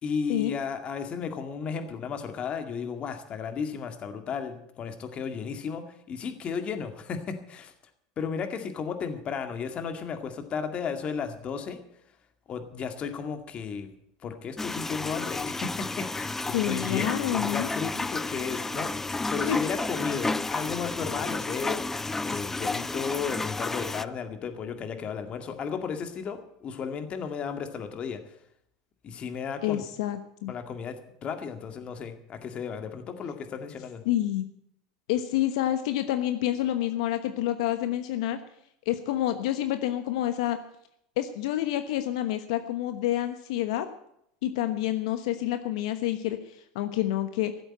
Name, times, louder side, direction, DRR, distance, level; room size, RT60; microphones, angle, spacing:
voice 1, 0.0-7.7 8.2-11.8 12.5-13.9 14.2-18.9 19.3-28.2 29.0-29.8 30.5-34.0, left 6 dB, 35° left, 7 dB, 2.1 m, -34 dB
sound 1, 14.6-24.1, left 3 dB, 10° left, 0.5 m, -31 dB
voice 2, 16.5-17.7 19.5-19.6 29.6-30.5 34.1-34.5 35.1-38.4 38.9-40.6 41.2-43.9 44.4-47.5, left 13 dB, 75° left, 9 dB, 1.1 m, -28 dB
15.5 x 7.9 x 8.8 m, 0.74 s
supercardioid pair, 115°, 3 cm